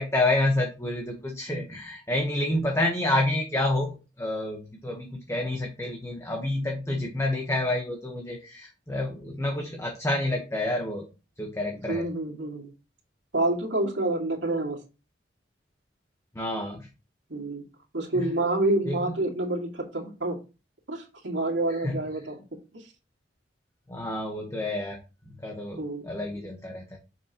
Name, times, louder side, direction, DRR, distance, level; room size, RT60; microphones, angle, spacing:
voice 1, 0.0-11.0 11.4-12.1 16.3-16.9 18.1-18.3 18.8-19.2 21.7-22.0 23.9-25.0 25.4-27.0, left 1 dB, 15° left, 2 dB, 1.2 m, -29 dB
voice 2, 11.9-12.7 13.3-14.8 17.3-17.6 17.9-20.4 20.9-22.3 22.7-22.8 25.8-26.1, right 2 dB, 85° right, 1 dB, 2.3 m, -28 dB
7.5 x 6.1 x 3.0 m, 0.30 s
head